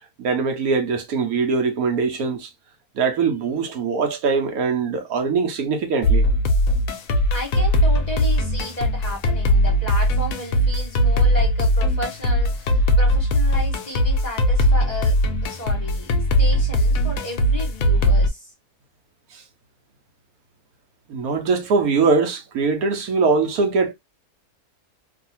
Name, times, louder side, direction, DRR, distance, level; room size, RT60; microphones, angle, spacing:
voice 1, 0.2-2.5 2.9-6.2 19.3-19.4 21.1-23.9, right 4 dB, 75° right, 1.1 m, -22 dB
sound 1, 6.0-18.3, equal, 70° left, 0.9 m, -19 dB
voice 2, 7.3-16.1 16.4-18.4, left 1 dB, 30° left, 0.9 m, -33 dB
2.6 x 2.4 x 2.7 m
omnidirectional pair, 1.7 m